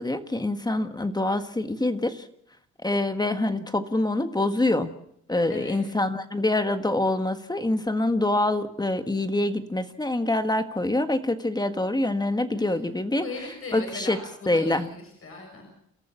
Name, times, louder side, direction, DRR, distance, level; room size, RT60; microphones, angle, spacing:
voice 1, 0.0-2.3 2.8-4.9 5.3-13.3 13.7-14.2 14.5-14.9, left 2 dB, 15° left, 8 dB, 1.7 m, -25 dB
voice 2, 5.5-5.9 12.5-14.2 14.5-15.7, left 3 dB, 45° left, 2 dB, 6.6 m, -39 dB
29.5 x 13.5 x 7.2 m, 0.72 s
cardioid pair, 90°, 30 cm